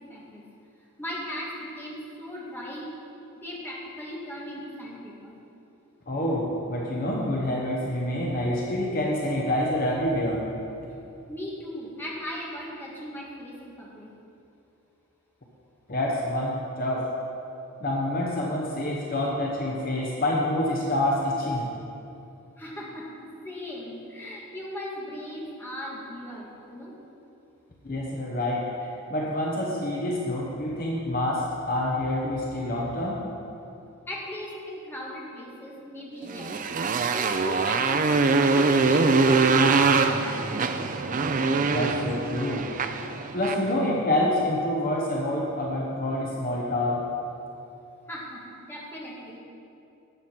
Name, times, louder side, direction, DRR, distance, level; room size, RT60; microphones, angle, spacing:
voice 1, 0.1-0.4 1.0-2.9 3.4-5.4 11.3-14.1 22.6-26.9 34.1-36.5 37.1-40.3 48.1-49.4, left 1 dB, 10° left, -4 dB, 1.6 m, -38 dB
voice 2, 6.1-10.4 15.9-17.1 17.8-21.7 27.8-33.3 41.7-42.7 43.3-47.0, left 1 dB, 40° left, -2 dB, 0.9 m, -27 dB
Motorcycle, 36.3-43.7, right 4 dB, 35° right, 0.4 m, -23 dB
12.0 x 7.9 x 4.4 m, 2.7 s
head